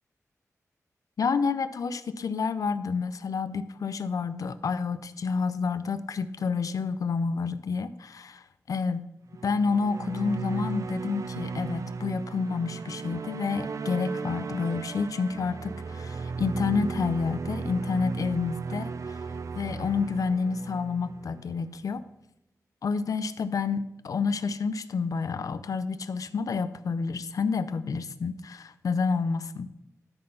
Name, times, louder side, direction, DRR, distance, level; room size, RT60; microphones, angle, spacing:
voice 1, 1.2-9.1 9.4-19.2 19.5-22.0 22.8-29.7, left 5 dB, 80° left, 13 dB, 0.5 m, -29 dB
sound 1, 9.3-21.8, right 4 dB, 65° right, 0.4 m, -36 dB
13.0 x 4.4 x 5.5 m, 0.89 s
wide cardioid pair, 95°, 6 cm